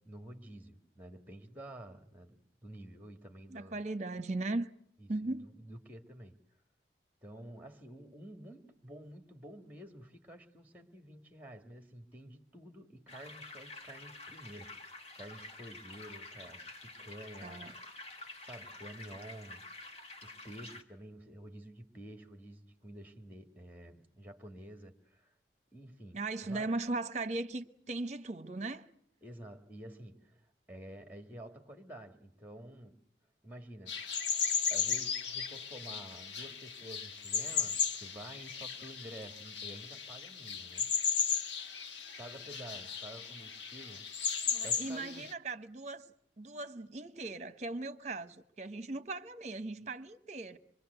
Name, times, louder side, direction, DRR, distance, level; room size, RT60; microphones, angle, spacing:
voice 1, 0.0-3.8 5.0-6.3 7.2-17.8 18.2-19.6 20.2-25.3 25.7-26.2 26.5-26.8 29.2-33.0 33.4-34.0 34.7-41.3 42.2-44.1 44.6-45.3, right 1 dB, 10° right, 1.9 m, -50 dB
voice 2, 3.5-4.7 5.1-5.5 17.4-17.7 26.1-28.9 44.5-46.0 46.4-50.6, right 2 dB, 35° right, 1.1 m, -38 dB
sound 1, 13.1-20.8, left 2 dB, 35° left, 2.1 m, -49 dB
sound 2, 33.9-45.3, left 6 dB, 75° left, 1.5 m, -35 dB
26.0 x 22.5 x 8.1 m
head